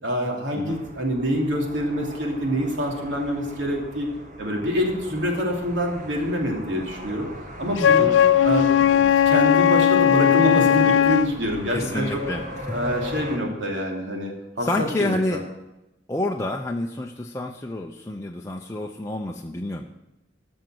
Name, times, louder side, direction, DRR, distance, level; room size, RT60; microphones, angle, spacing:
voice 1, 0.0-4.1 4.4-7.3 7.6-8.1 8.4-12.2 12.7-15.4, equal, 80° right, 0 dB, 2.9 m, -26 dB
sound 1, 0.7-13.4, equal, 45° right, 1.8 m, -39 dB
Wind instrument woodwind instrument, 7.8-11.3, left 9 dB, 90° left, 0.4 m, -17 dB
voice 2, 11.7-12.4 12.7-12.8 14.6-15.4 16.1-19.8, left 1 dB, 15° left, 1 dB, 0.6 m, -28 dB
14.0 x 6.4 x 7.7 m, 0.95 s
head